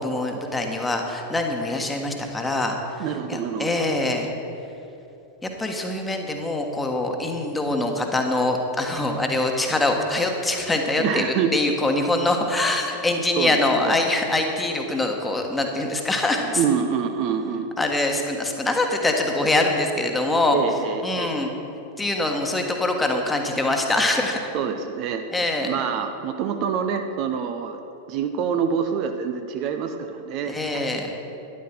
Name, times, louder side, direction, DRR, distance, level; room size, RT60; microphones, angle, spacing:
voice 1, 0.0-4.3 5.4-11.2 11.5-16.6 17.8-20.6 21.0-21.5 22.0-24.4 25.3-25.7 30.5-31.1, left 2 dB, 10° left, 3 dB, 1.4 m, -24 dB
voice 2, 3.0-3.9 11.0-11.5 13.3-14.0 16.5-17.7 20.5-21.4 24.5-25.2 25.6-27.8 28.1-30.9, right 7 dB, 40° right, 6 dB, 0.7 m, -26 dB
12.5 x 11.0 x 4.5 m, 2.9 s
figure-of-eight pair, 90°, 0 cm